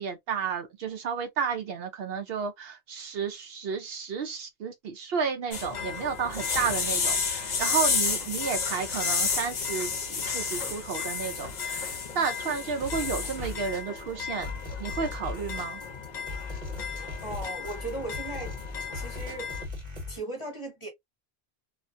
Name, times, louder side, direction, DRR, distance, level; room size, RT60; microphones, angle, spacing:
voice 1, 0.0-14.5 14.8-15.8, right 6 dB, 65° right, 0.7 m, -32 dB
sound 1, 5.5-19.6, left 5 dB, 50° left, 0.7 m, -32 dB
sound 2, 12.8-20.2, left 3 dB, 40° right, 1.2 m, -38 dB
voice 2, 17.2-18.6 18.9-19.5 20.1-20.9, right 2 dB, 30° left, 1.0 m, -37 dB
2.4 x 2.2 x 2.4 m
omnidirectional pair, 1.1 m